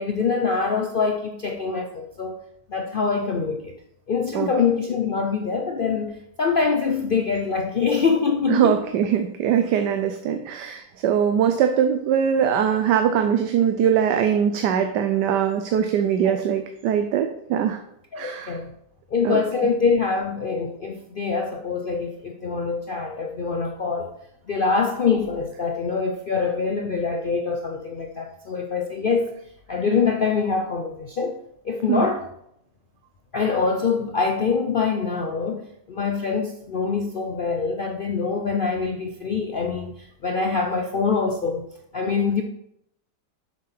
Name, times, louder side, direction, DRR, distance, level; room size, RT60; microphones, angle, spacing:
voice 1, 0.0-2.4 2.7-3.7 4.1-8.8 16.2-16.4 18.1-18.7 19.1-24.2 24.5-29.4 29.7-31.4 31.6-32.3 33.3-41.7 41.9-42.4, left 5 dB, 65° left, 0.5 m, -24 dB
voice 2, 8.5-17.8 18.2-18.6 19.2-19.4 31.9-32.1, right 8 dB, 80° right, 1.3 m, -22 dB
7.4 x 6.1 x 5.7 m
omnidirectional pair, 1.8 m